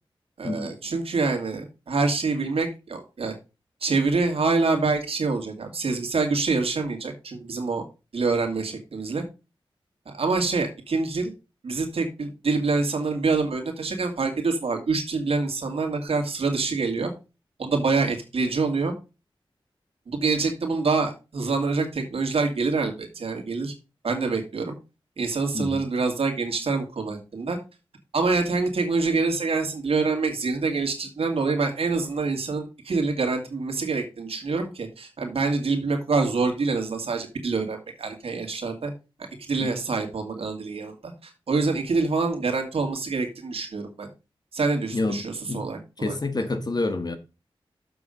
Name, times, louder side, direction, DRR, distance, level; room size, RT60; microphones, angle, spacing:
voice 1, 0.4-3.3 3.8-7.9 8.1-9.2 10.1-11.3 11.6-17.1 17.6-18.9 20.1-23.7 24.0-24.8 25.2-27.6 28.1-38.9 39.5-44.1 44.5-46.1, right 4 dB, 85° right, 2.3 m, -26 dB
voice 2, 44.9-45.6 46.0-47.2, left 2 dB, 45° left, 1.6 m, -28 dB
7.2 x 6.1 x 5.1 m
wide cardioid pair, 60°, 10 cm